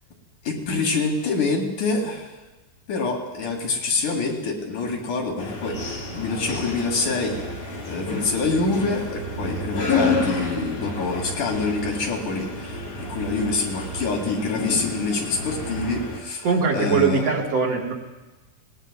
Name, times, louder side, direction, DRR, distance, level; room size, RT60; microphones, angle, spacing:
voice 1, 0.5-2.3 2.9-7.4 7.9-17.3, left 3 dB, 85° left, 0 dB, 3.6 m, -26 dB
sound 1, 5.4-16.2, left 3 dB, 55° left, 3.3 m, -30 dB
voice 2, 16.4-17.9, right 5 dB, 60° right, -1 dB, 2.3 m, -21 dB
23.0 x 19.5 x 2.2 m, 1.2 s
omnidirectional pair, 3.5 m